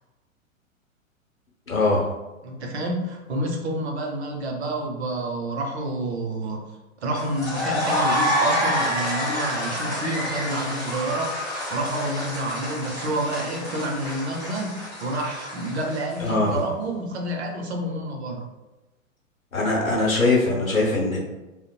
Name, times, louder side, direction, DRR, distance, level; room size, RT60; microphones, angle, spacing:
voice 1, 1.7-2.1 16.2-16.6 19.5-21.2, left 2 dB, 85° left, -3 dB, 0.9 m, -21 dB
voice 2, 2.4-6.6 7.0-18.4, right 1 dB, 55° right, 1 dB, 0.7 m, -29 dB
sound 1, 7.2-16.5, equal, 10° left, 0.4 m, -28 dB
3.0 x 2.0 x 2.2 m, 1.1 s
figure-of-eight pair, 110°, 40 cm